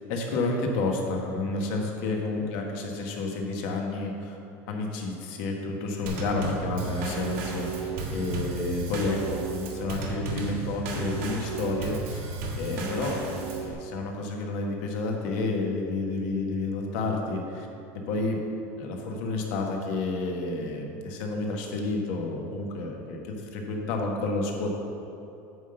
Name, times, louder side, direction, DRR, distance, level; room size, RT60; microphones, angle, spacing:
voice 1, 0.0-4.4 4.7-12.2 12.6-17.7 18.1-18.4 18.8-24.7, left 2 dB, 65° left, 1 dB, 1.3 m, -30 dB
Drum kit / Snare drum / Bass drum, 6.1-13.7, right 3 dB, 80° right, 1.5 m, -33 dB
9.3 x 3.6 x 6.7 m, 2.9 s
cardioid pair, 160°, 7 cm